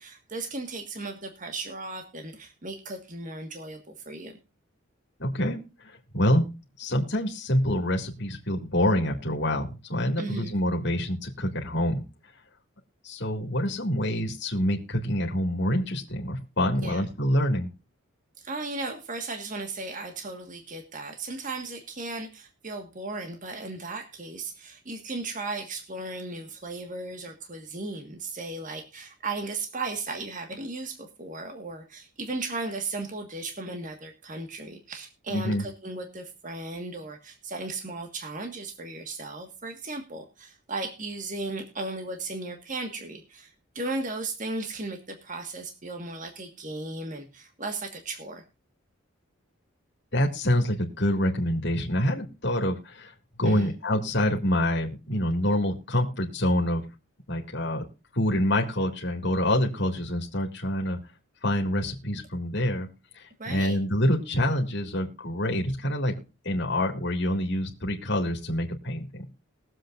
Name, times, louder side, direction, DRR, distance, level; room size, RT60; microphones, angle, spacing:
voice 1, 0.0-4.4 10.2-10.5 16.8-17.0 18.4-48.4 53.5-53.7 63.4-63.8, right 3 dB, 40° right, 5 dB, 1.6 m, -36 dB
voice 2, 5.2-6.5 6.8-12.0 13.0-17.7 35.3-35.6 50.1-56.8 57.3-57.9 58.1-61.0 61.4-62.9 63.1-66.2 66.4-69.3, left 1 dB, 55° left, 1 dB, 2.3 m, -26 dB
21.0 x 7.7 x 2.5 m, 0.31 s
head